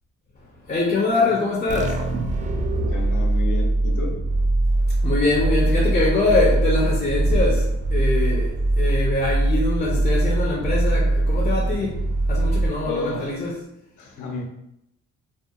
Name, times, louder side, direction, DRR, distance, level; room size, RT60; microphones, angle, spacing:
voice 1, 0.7-2.0 5.0-7.7 7.9-8.5 8.8-12.0 12.3-13.5, left 2 dB, 25° left, -3 dB, 0.6 m, -23 dB
sound 1, 1.7-13.2, right 2 dB, 25° right, 0.3 m, -22 dB
voice 2, 2.9-4.2 12.8-13.4 14.0-14.4, left 3 dB, 75° left, 1 dB, 0.7 m, -31 dB
2.8 x 2.4 x 2.3 m, 0.83 s
cardioid pair, 90°, 30 cm